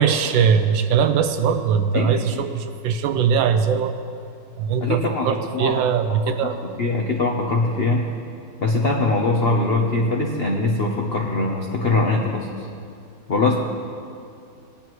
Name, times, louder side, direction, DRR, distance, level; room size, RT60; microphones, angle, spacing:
voice 1, 0.0-4.0 4.6-6.6, right 7 dB, 75° right, 9 dB, 1.3 m, -21 dB
voice 2, 1.9-2.4 4.8-5.8 6.4-6.5 6.8-8.0 8.6-12.5 13.3-13.6, left 2 dB, 70° left, 1 dB, 0.5 m, -22 dB
19.0 x 10.5 x 3.1 m, 2.4 s
omnidirectional pair, 2.3 m